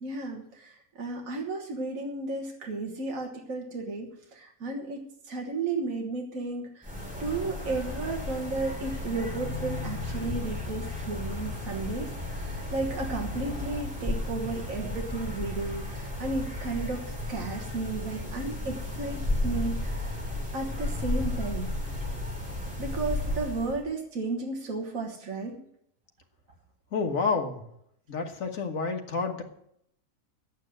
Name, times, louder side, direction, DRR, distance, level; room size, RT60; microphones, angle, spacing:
voice 1, 0.0-6.9 7.2-17.0 17.3-20.2 20.5-21.7 22.8-25.6, right 3 dB, 65° right, 0 dB, 1.8 m, -33 dB
sound 1, 6.8-23.8, left 2 dB, 5° right, 3.6 m, -33 dB
voice 2, 26.9-27.6 28.1-29.4, left 4 dB, 65° left, 4 dB, 1.8 m, -29 dB
9.3 x 8.3 x 8.9 m, 0.73 s
omnidirectional pair, 1.5 m